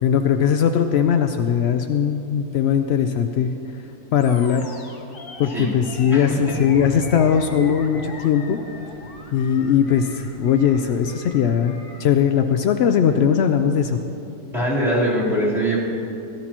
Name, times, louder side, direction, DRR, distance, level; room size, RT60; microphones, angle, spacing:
voice 1, 0.0-3.5 4.1-4.7 5.4-8.6 9.3-14.0, left 8 dB, 80° left, 6 dB, 0.5 m, -19 dB
Animal, 4.1-12.1, left 3 dB, 40° left, 1.1 m, -41 dB
voice 2, 6.1-6.4 14.5-15.8, right 1 dB, ahead, -8 dB, 3.4 m, -22 dB
sound 1, 6.1-11.2, left 3 dB, 60° right, 2.1 m, -40 dB
16.5 x 14.0 x 2.9 m, 2.8 s
omnidirectional pair, 1.6 m